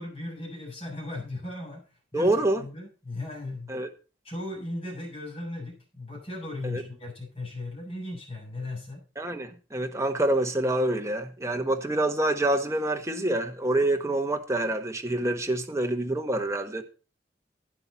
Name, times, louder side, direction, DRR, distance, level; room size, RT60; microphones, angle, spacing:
voice 1, 0.0-1.8 2.1-3.7 4.2-9.0, left 2 dB, 30° left, 7.2 m, -37 dB
voice 2, 2.1-2.6 3.7-3.9 6.6-6.8 9.2-16.8, right 1 dB, 15° right, 1.4 m, -26 dB
12.0 x 10.0 x 4.1 m
head